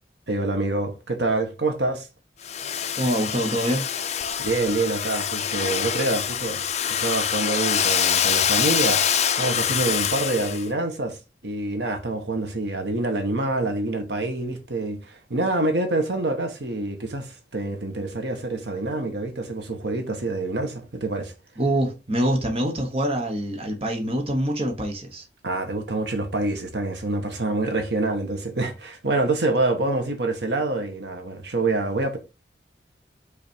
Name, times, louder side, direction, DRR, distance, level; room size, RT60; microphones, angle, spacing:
voice 1, 0.3-2.1 4.4-6.6 7.0-9.0 9.4-11.2 11.4-21.3 25.4-32.2, right 2 dB, 75° right, 1.3 m, -26 dB
Domestic sounds home sounds, 2.4-10.7, left 8 dB, 40° left, 0.5 m, -25 dB
voice 2, 3.0-3.9 21.6-25.3, right 1 dB, 35° right, 1.2 m, -25 dB
5.3 x 4.2 x 4.5 m
head